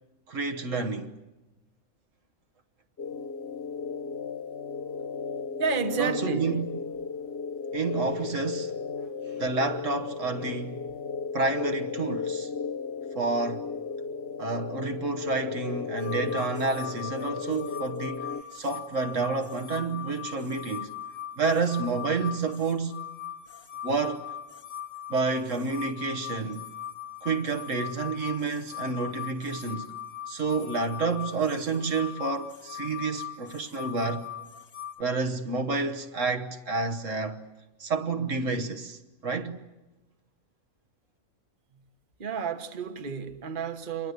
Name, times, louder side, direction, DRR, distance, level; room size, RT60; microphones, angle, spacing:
voice 1, 0.3-1.2 6.0-6.7 7.7-8.7 9.2-10.8 11.3-12.5 13.1-13.7 14.4-21.0 21.4-23.0 23.8-24.3 25.1-26.7 27.2-29.9 30.3-34.3 35.0-37.5 37.8-39.6, right 4 dB, 65° right, 1.5 m, -29 dB
sound 1, 3.0-18.4, left 5 dB, 50° left, 1.2 m, -35 dB
voice 2, 5.6-6.5 9.0-9.1 42.2-44.1, right 6 dB, 40° right, 1.4 m, -31 dB
sound 2, 16.0-35.0, left 10 dB, 75° left, 2.0 m, -40 dB
27.5 x 23.0 x 8.1 m
omnidirectional pair, 1.4 m